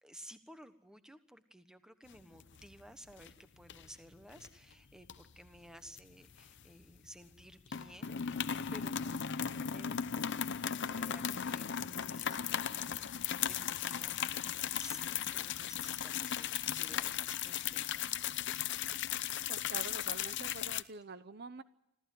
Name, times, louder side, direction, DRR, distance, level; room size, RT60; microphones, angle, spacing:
voice 1, 0.0-18.1, equal, 5° right, 10 dB, 1.2 m, -55 dB
sound 1, 2.1-2.8 3.1-3.3 3.7-4.5 5.0-7.0 7.2-7.4 7.7-20.8, left 9 dB, 55° left, 0.7 m, -37 dB
voice 2, 19.5-21.6, right 4 dB, 50° right, 13 dB, 0.8 m, -46 dB
26.0 x 14.5 x 9.2 m, 0.89 s
head